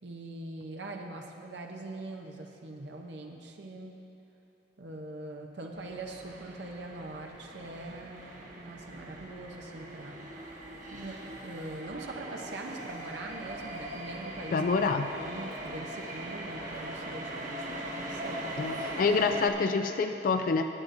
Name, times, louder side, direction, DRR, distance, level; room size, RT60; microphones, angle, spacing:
voice 1, 0.0-3.9 4.8-10.3 10.7-14.7 15.1-18.5, right 2 dB, 85° right, 2 dB, 0.8 m, -42 dB
sound 1, 5.8-19.5, right 1 dB, 45° right, 1.3 m, -40 dB
voice 2, 14.5-15.1 18.6-20.6, left 4 dB, 50° left, 6 dB, 0.3 m, -27 dB
17.5 x 9.0 x 2.6 m, 2.9 s
head